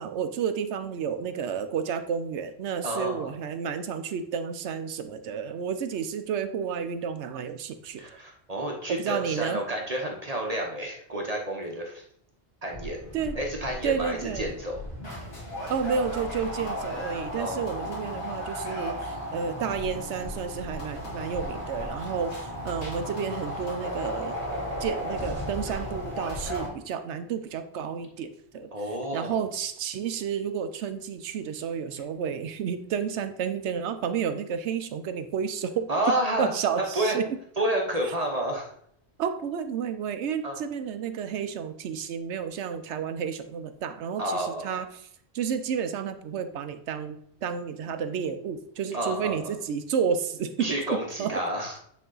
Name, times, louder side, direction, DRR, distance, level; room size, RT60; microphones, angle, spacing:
voice 1, 0.0-8.1 8.9-9.6 13.1-13.4 13.8-14.5 15.7-24.4 24.8-28.7 29.1-35.9 36.4-37.2 39.2-44.9 45.3-50.7 51.2-51.3, right 7 dB, 85° right, 10 dB, 0.9 m, -31 dB
voice 2, 2.8-3.3 8.0-12.0 12.6-13.0 13.3-14.7 17.3-17.7 28.7-29.5 35.9-36.5 36.9-37.2 37.6-38.7 40.4-40.6 44.2-44.7 48.9-49.5 50.6-51.8, right 1 dB, 40° right, 1 dB, 0.9 m, -30 dB
sound 1, 12.7-26.7, equal, 45° left, 2.3 m, -35 dB
9.3 x 3.4 x 3.8 m, 0.69 s
omnidirectional pair, 1.1 m